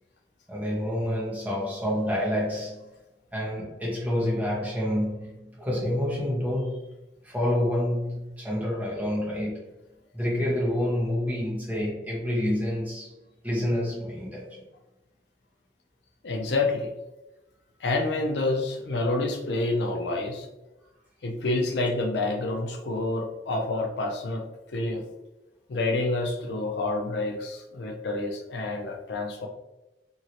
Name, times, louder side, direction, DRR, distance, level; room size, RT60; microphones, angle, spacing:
voice 1, 0.5-2.8 3.3-6.8 7.2-9.6 10.1-13.1 13.4-14.6, left 1 dB, 10° right, -6 dB, 0.9 m, -28 dB
voice 2, 16.2-16.9 17.8-20.5 21.2-24.4 24.7-25.0 25.7-29.5, left 2 dB, 75° left, 3 dB, 0.5 m, -28 dB
2.8 x 2.7 x 2.8 m, 1.0 s
head